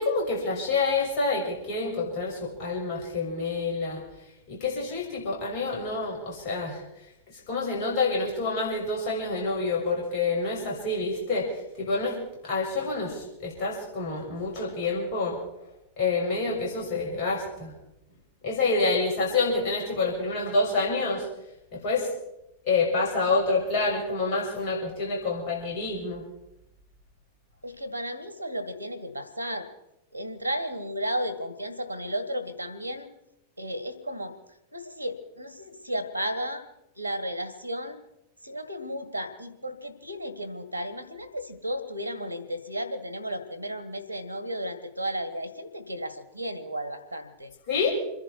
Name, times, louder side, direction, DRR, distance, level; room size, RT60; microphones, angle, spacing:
voice 1, 0.0-4.0 4.5-6.8 7.5-11.5 11.8-12.2 12.4-15.4 16.0-17.7 18.4-21.2 21.7-22.1 22.7-26.2 47.7-47.9, left 3 dB, 45° left, -2 dB, 6.9 m, -27 dB
voice 2, 27.6-29.7 30.1-33.1 33.6-34.4 34.7-36.6 37.0-38.0 38.4-47.5, equal, 90° left, 12 dB, 1.8 m, -34 dB
27.5 x 11.0 x 4.6 m, 0.86 s
figure-of-eight pair, 90°, 0 cm